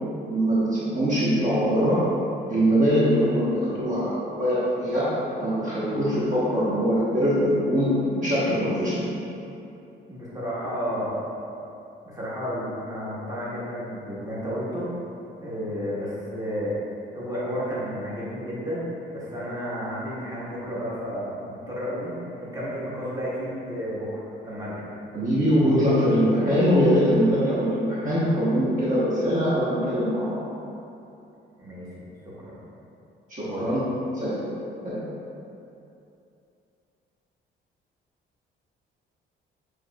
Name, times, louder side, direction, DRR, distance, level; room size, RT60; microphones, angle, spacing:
voice 1, 0.3-2.0 2.5-5.1 5.4-9.1 25.1-30.4 33.3-33.8 34.1-34.5 34.8-35.0, equal, 40° right, -10 dB, 1.1 m, -22 dB
voice 2, 10.1-11.2 12.0-14.9 15.4-16.8 17.1-24.9 31.6-32.6 33.4-33.7, equal, 15° right, -8 dB, 1.4 m, -32 dB
6.8 x 3.1 x 2.3 m, 2.7 s
cardioid pair, 90°, 20 cm